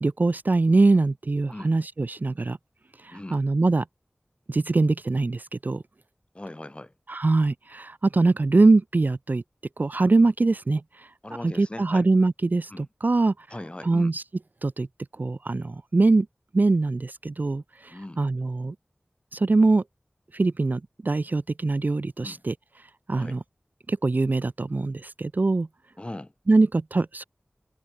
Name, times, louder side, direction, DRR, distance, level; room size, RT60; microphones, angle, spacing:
voice 1, 0.0-2.6 3.0-3.8 4.5-5.8 7.1-9.4 9.8-11.1 11.4-13.3 13.8-14.2 14.6-14.9 15.2-16.3 16.5-18.7 19.3-19.8 20.3-22.5 23.1-23.4 23.9-25.7 26.5-27.2, right 3 dB, 50° right, 0.4 m, -23 dB
voice 2, 3.1-3.4 6.3-6.9 11.2-12.0 12.7-12.9 13.5-14.1 17.9-18.2 22.2-22.4 23.1-23.4 26.0-26.3, left 1 dB, 30° left, 3.1 m, -39 dB
wide cardioid pair, 55°, 4 cm